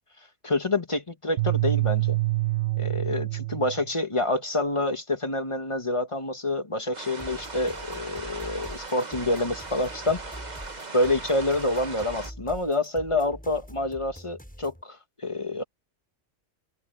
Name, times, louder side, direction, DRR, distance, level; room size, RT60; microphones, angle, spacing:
voice 1, 0.4-2.2 2.8-10.2 10.9-15.6, left 2 dB, 25° left, 1.6 m, -27 dB
sound 1, 1.4-3.9, right 19 dB, 85° right, 1.0 m, -26 dB
sound 2, 6.9-12.3, right 3 dB, 35° right, 1.6 m, -39 dB
sound 3, 7.2-14.8, equal, 5° left, 7.8 m, -44 dB
omnidirectional pair, 1.4 m